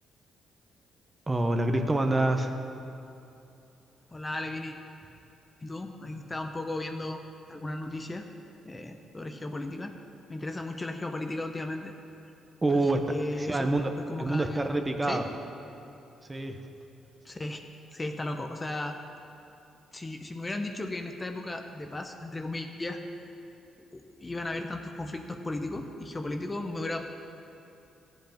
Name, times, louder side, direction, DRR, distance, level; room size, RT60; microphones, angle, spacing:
voice 1, 1.3-2.6 12.6-13.0 13.4-13.9 14.2-15.2 16.3-16.6, right 2 dB, 20° right, 5 dB, 1.0 m, -26 dB
voice 2, 4.1-4.7 5.6-7.2 7.5-8.3 8.6-9.9 10.3-11.9 12.7-12.8 13.1-13.7 14.0-14.6 15.0-15.3 17.2-17.6 17.9-19.0 19.9-23.0 23.9-27.0, left 2 dB, 20° left, 5 dB, 0.8 m, -35 dB
15.0 x 7.9 x 5.2 m, 2.8 s
cardioid pair, 90°, 0 cm